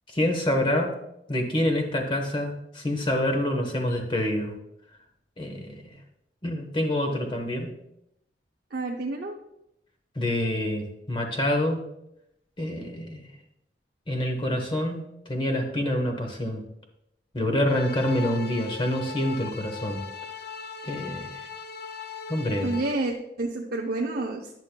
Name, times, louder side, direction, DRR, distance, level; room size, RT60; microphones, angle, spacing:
voice 1, 0.1-0.9 1.3-4.5 5.4-6.0 6.4-7.7 10.1-11.8 12.6-13.3 14.1-16.6 17.3-20.0 20.8-21.4 22.3-22.8, left 1 dB, 30° left, 4 dB, 1.1 m, -27 dB
voice 2, 8.7-9.3 22.6-24.5, right 2 dB, 60° right, -1 dB, 0.7 m, -29 dB
sound 1, 17.7-22.9, left 6 dB, 60° left, 0.5 m, -39 dB
10.5 x 6.3 x 2.2 m, 0.81 s
head